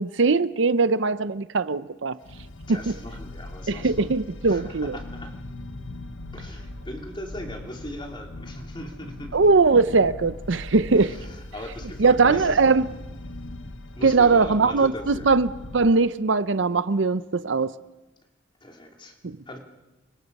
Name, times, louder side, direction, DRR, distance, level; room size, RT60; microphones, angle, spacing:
voice 1, 0.0-2.1 2.9-3.0 3.7-5.0 9.3-11.2 12.0-12.8 14.0-17.7 19.2-19.4, right 4 dB, 70° right, 0.7 m, -20 dB
sound 1, 2.2-15.9, left 2 dB, 80° left, 1.2 m, -40 dB
voice 2, 2.3-4.1 4.4-5.3 6.3-9.6 10.9-12.8 13.9-15.4 18.6-19.2 19.5-19.6, left 1 dB, 25° left, 2.9 m, -39 dB
29.0 x 25.0 x 5.4 m
head